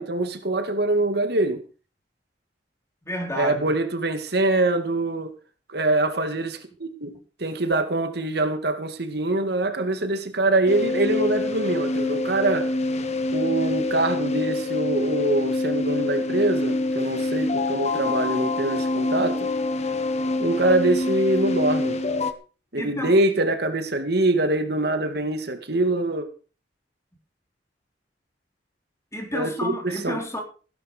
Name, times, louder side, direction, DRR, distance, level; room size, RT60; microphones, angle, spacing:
voice 1, 0.0-1.6 3.4-5.3 5.7-7.1 7.4-12.7 13.3-19.5 20.4-22.0 22.7-26.3 29.3-30.2, right 2 dB, 65° right, 2.3 m, -24 dB
voice 2, 3.0-3.7 22.8-23.1 29.1-30.4, left 1 dB, 15° left, 4.4 m, -31 dB
sound 1, 10.7-22.3, left 2 dB, 40° left, 1.5 m, -26 dB
sound 2, 15.1-21.8, equal, 60° left, 5.5 m, -41 dB
17.0 x 11.0 x 5.1 m
head